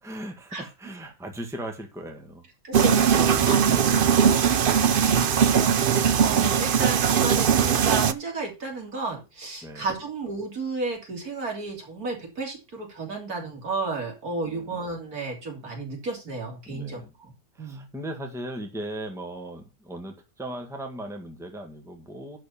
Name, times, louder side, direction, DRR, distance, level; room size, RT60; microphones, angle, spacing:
voice 1, 0.0-2.5 3.6-4.2 9.6-9.9 14.4-14.8 16.6-17.1 17.5-22.4, right 1 dB, ahead, 3 dB, 1.7 m, -38 dB
voice 2, 2.6-3.8 5.0-17.3 17.6-17.9, right 3 dB, 70° right, 1 dB, 3.5 m, -33 dB
sound 1, 2.7-8.1, right 7 dB, 55° right, 0.6 m, -20 dB
11.0 x 4.5 x 7.1 m, 0.29 s
omnidirectional pair, 1.6 m